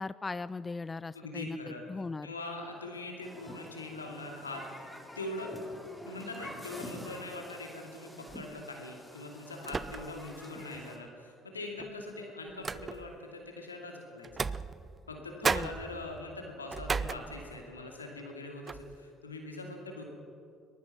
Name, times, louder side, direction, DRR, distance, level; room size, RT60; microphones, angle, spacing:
voice 1, 0.0-2.3 15.4-15.7, left 3 dB, 20° left, 17 dB, 0.4 m, -38 dB
voice 2, 1.1-1.8 2.2-4.9 5.1-5.5 6.1-14.5 15.1-20.0, left 2 dB, 80° left, 2 dB, 2.5 m, -42 dB
Human group actions, 3.2-11.0, equal, 5° left, 4.3 m, -48 dB
sound 1, 8.3-8.6 9.6-10.3 10.7-10.8 11.8-13.2 14.2-15.2 15.4-17.8 18.2-18.3 18.7-19.0, right 4 dB, 25° right, 0.6 m, -36 dB
22.5 x 20.0 x 5.9 m, 2.5 s
figure-of-eight pair, 55°, 0 cm